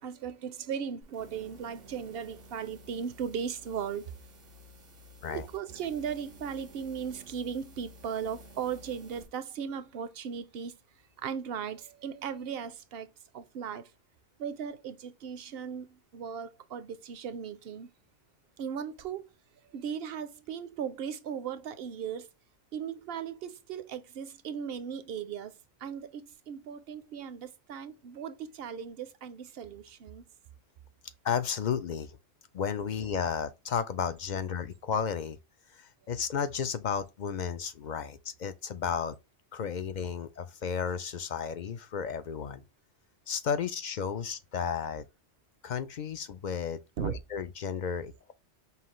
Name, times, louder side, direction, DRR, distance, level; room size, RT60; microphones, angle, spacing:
voice 1, 0.0-4.1 5.3-10.8 11.2-13.1 13.3-13.9 14.4-17.9 18.6-19.3 19.6-22.3 22.7-30.2 47.0-47.1, right 7 dB, 65° right, 0.7 m, -37 dB
sound 1, 1.0-9.3, equal, 90° right, 1.5 m, -53 dB
voice 2, 31.2-32.2 32.5-35.4 35.7-39.2 39.5-42.6 43.3-45.1 45.6-48.3, left 7 dB, 60° left, 0.5 m, -33 dB
5.6 x 2.3 x 3.0 m
omnidirectional pair, 1.2 m